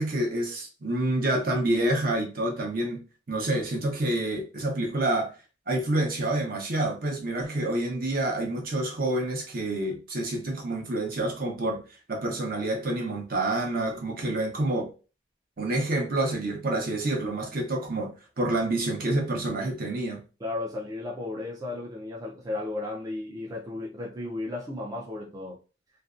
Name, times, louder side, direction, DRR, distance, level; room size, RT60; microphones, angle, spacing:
voice 1, 0.0-3.0 3.3-5.3 5.7-11.8 12.1-14.9 15.6-18.1 18.4-20.2, right 1 dB, 50° right, 0.7 m, -28 dB
voice 2, 20.4-25.6, left 2 dB, 20° right, 0.3 m, -34 dB
2.5 x 2.1 x 2.3 m
head